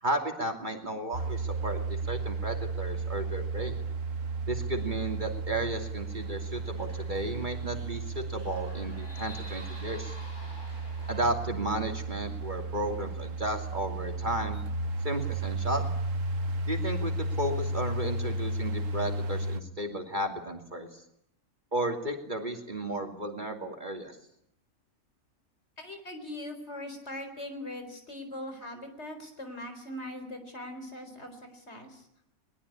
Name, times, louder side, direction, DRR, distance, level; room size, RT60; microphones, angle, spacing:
voice 1, 0.0-3.8 4.5-10.2 11.1-14.6 15.0-15.9 16.7-21.0 21.7-24.2, right 1 dB, 35° right, 4 dB, 2.8 m, -33 dB
sound 1, 1.1-19.6, right 3 dB, 65° right, 1.6 m, -34 dB
sound 2, 6.1-11.3, left 1 dB, 35° left, 7.0 m, -50 dB
voice 2, 25.8-32.1, left 1 dB, 50° left, 6 dB, 4.6 m, -41 dB
21.5 x 21.0 x 10.0 m, 0.73 s
omnidirectional pair, 1.5 m